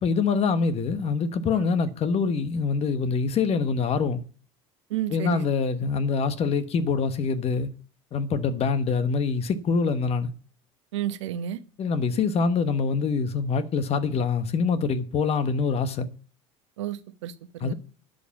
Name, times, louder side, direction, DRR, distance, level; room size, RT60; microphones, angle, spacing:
voice 1, 0.0-4.2 5.1-7.7 8.1-10.3 11.8-16.1 17.6-17.7, left 5 dB, 45° left, 1.2 m, -25 dB
voice 2, 4.9-5.4 10.9-11.6 16.8-17.7, right 11 dB, 90° right, 0.9 m, -31 dB
11.0 x 5.4 x 7.1 m
hypercardioid pair, 85°, 15 cm